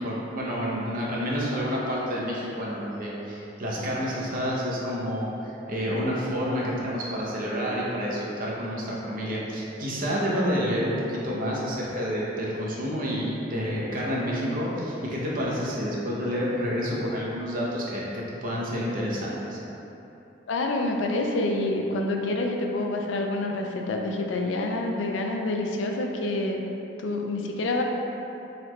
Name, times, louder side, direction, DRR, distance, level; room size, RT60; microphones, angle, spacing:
voice 1, 0.0-19.6, equal, 50° right, -5 dB, 0.7 m, -29 dB
voice 2, 20.5-26.6 27.0-27.8, left 2 dB, 90° left, 2 dB, 0.4 m, -27 dB
3.9 x 3.1 x 3.0 m, 2.9 s
head